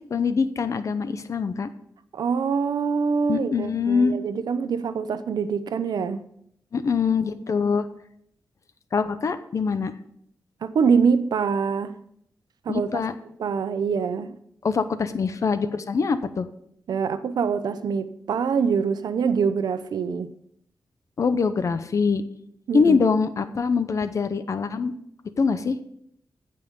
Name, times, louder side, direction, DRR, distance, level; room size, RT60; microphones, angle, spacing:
voice 1, 0.0-1.7 3.3-4.1 6.7-7.9 8.9-9.9 12.7-13.1 14.6-16.5 21.2-22.2 22.7-24.9 25.4-25.8, left 5 dB, 50° left, 11 dB, 0.7 m, -23 dB
voice 2, 2.1-6.2 10.6-12.0 12.6-12.9 13.4-14.4 16.9-20.3 22.7-23.0, right 6 dB, 90° right, 12 dB, 0.7 m, -24 dB
15.5 x 5.5 x 5.3 m, 0.70 s
wide cardioid pair, 130°, 7 cm